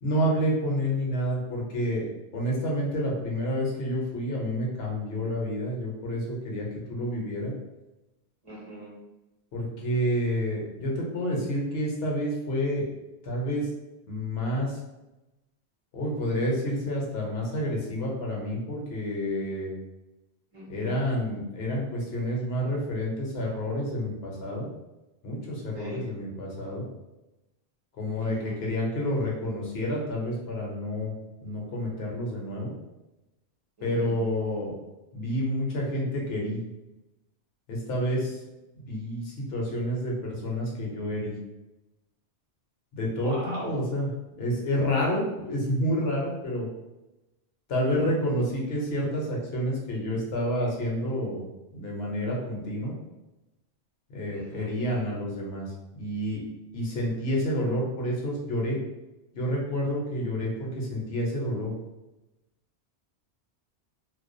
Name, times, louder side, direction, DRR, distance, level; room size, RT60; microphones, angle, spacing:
voice 1, 0.0-7.5 9.5-12.8 13.2-13.7 14.1-14.8 15.9-19.7 20.7-24.7 25.2-26.8 28.0-31.1 31.4-32.7 33.8-34.7 35.1-36.6 37.7-38.4 38.9-41.3 42.9-44.1 44.4-46.7 47.7-51.4 51.7-52.9 54.1-56.4 56.7-58.8 59.3-61.7, equal, 70° left, -2 dB, 0.9 m, -29 dB
voice 2, 8.4-8.9 20.5-20.9 25.7-26.0 28.1-28.6 33.8-34.1 43.2-43.7 54.3-54.7, right 1 dB, 35° right, -5 dB, 0.8 m, -40 dB
2.3 x 2.2 x 2.5 m, 0.99 s
omnidirectional pair, 1.1 m